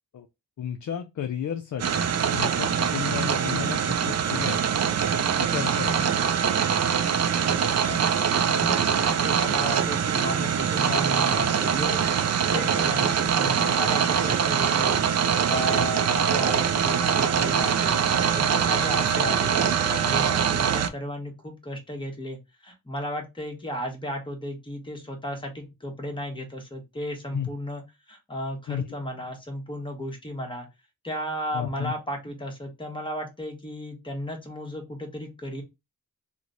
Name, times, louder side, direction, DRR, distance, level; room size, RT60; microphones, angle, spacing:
voice 1, 0.6-2.0 2.3-4.7 5.4-5.9 27.3-27.5 28.7-29.0 31.5-31.9, left 9 dB, 60° left, 0.5 m, -33 dB
sound 1, 1.8-20.9, right 7 dB, 50° right, 0.4 m, -23 dB
voice 2, 8.4-12.0 12.5-15.0 15.5-18.0 18.3-30.7 31.0-35.6, equal, 15° left, 1.1 m, -34 dB
3.0 x 2.1 x 3.7 m
wide cardioid pair, 80°, 35 cm